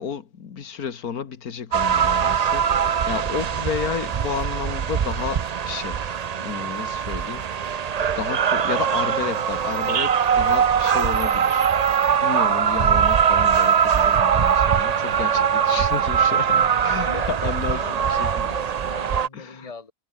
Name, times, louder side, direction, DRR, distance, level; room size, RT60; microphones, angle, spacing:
voice 1, 0.0-6.1 6.4-18.5 19.3-19.7, left 7 dB, 85° left, 2.0 m, -32 dB
sound 1, 1.7-19.3, right 7 dB, 60° right, 0.4 m, -21 dB
voice 2, 3.3-3.7 16.5-19.9, left 4 dB, 25° left, 2.0 m, -39 dB
omnidirectional pair, 1.5 m